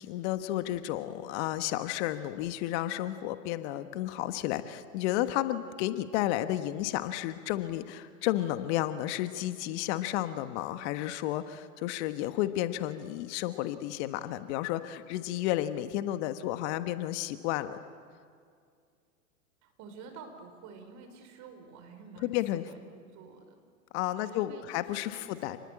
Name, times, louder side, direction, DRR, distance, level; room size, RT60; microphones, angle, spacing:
voice 1, 0.0-17.8 22.2-22.6 23.9-25.6, left 14 dB, 50° left, 10 dB, 1.5 m, -32 dB
voice 2, 19.6-22.9 23.1-23.6 24.2-25.6, right 4 dB, 40° right, 6 dB, 5.4 m, -49 dB
29.0 x 20.5 x 8.6 m, 2.2 s
hypercardioid pair, 105°, 44 cm